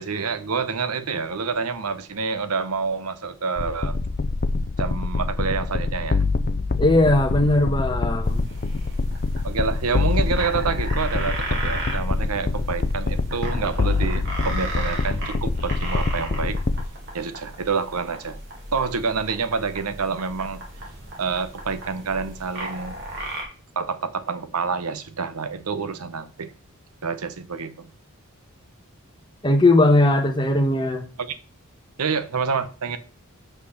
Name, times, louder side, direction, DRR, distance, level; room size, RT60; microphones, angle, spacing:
voice 1, 0.0-4.0 4.8-6.2 9.4-16.6 17.1-18.4 18.7-20.6 21.2-22.9 23.8-26.5 27.0-27.9 31.2-31.4 32.0-33.0, right 5 dB, 85° right, 0.8 m, -27 dB
sound 1, 3.6-16.9, left 3 dB, 40° left, 0.5 m, -25 dB
voice 2, 6.8-8.4 29.4-31.0, left 2 dB, 20° left, 1.1 m, -18 dB
sound 2, 8.2-23.4, right 2 dB, 55° right, 2.6 m, -36 dB
6.0 x 5.7 x 6.5 m
head